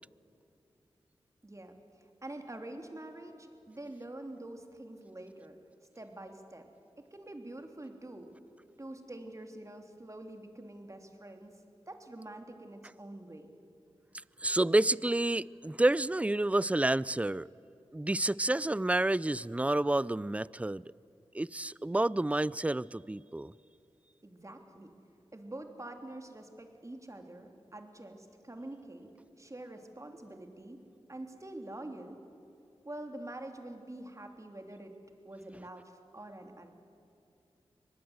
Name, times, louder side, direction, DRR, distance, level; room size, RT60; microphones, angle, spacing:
voice 1, 1.4-1.7 2.2-5.6 5.9-6.7 7.0-8.3 8.8-11.5 11.9-13.5 24.2-24.9 25.3-29.1 29.4-30.8 31.1-32.2 32.8-34.9 35.2-36.7, right 1 dB, 30° right, 5 dB, 3.1 m, -46 dB
voice 2, 14.4-17.5 17.9-20.8 21.3-23.5, right 1 dB, 15° right, 22 dB, 0.4 m, -29 dB
24.5 x 19.0 x 8.0 m, 2.7 s
cardioid pair, 40°, 11 cm